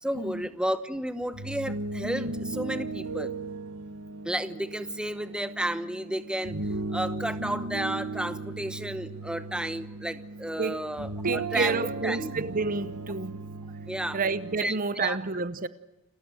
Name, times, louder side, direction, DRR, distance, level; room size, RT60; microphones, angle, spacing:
voice 1, 0.0-3.3 4.2-6.5 6.9-12.3 13.9-14.2 14.6-15.2, right 1 dB, 5° right, 1.0 m, -32 dB
sound 1, 1.2-14.6, right 3 dB, 80° right, 1.5 m, -36 dB
voice 2, 11.2-13.4 14.1-15.7, right 4 dB, 40° right, 0.8 m, -29 dB
29.0 x 15.0 x 9.1 m
head